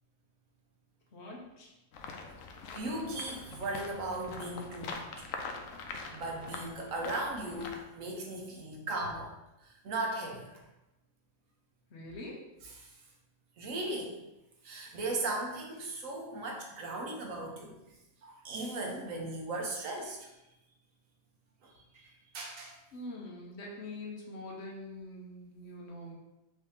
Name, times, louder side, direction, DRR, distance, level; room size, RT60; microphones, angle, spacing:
voice 1, 1.1-1.7 11.9-12.4 22.9-26.1, left 1 dB, 60° left, -2 dB, 1.1 m, -44 dB
sound 1, 1.9-7.8, left 4 dB, 90° left, 1.0 m, -44 dB
voice 2, 2.7-5.2 6.1-9.3 9.6-10.5 12.8-12.9 13.6-14.2 14.6-17.8 18.2-20.3 21.6-22.8, right 2 dB, 85° right, 0 dB, 1.3 m, -37 dB
4.6 x 2.8 x 3.4 m, 0.95 s
omnidirectional pair, 1.3 m